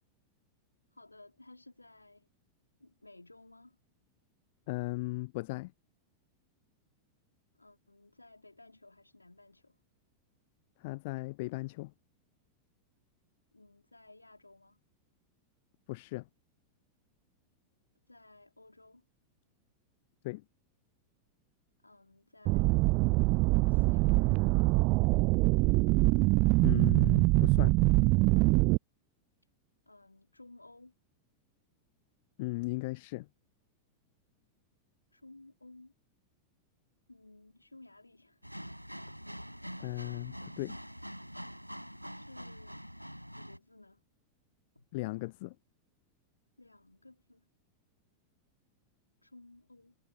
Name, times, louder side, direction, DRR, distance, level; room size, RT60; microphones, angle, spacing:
voice 1, 0.9-2.3 2.8-3.8 7.5-9.8 13.5-14.8 18.1-19.0 21.8-22.9 23.7-24.6 29.9-30.9 35.1-35.9 37.1-38.5 42.1-42.8 43.3-44.0 44.7-44.9 46.6-47.5 49.2-50.0, left 2 dB, 85° left, 2.6 m, -56 dB
voice 2, 4.7-5.7 10.8-11.9 15.9-16.3 20.2-20.4 26.6-27.8 32.4-33.3 39.8-40.8 44.9-45.6, left 22 dB, 50° left, 0.4 m, -37 dB
sound 1, 22.5-28.8, right 26 dB, 40° right, 0.4 m, -24 dB
sound 2, 38.4-43.6, equal, 90° right, 5.7 m, -45 dB
figure-of-eight pair, 90°, 0 cm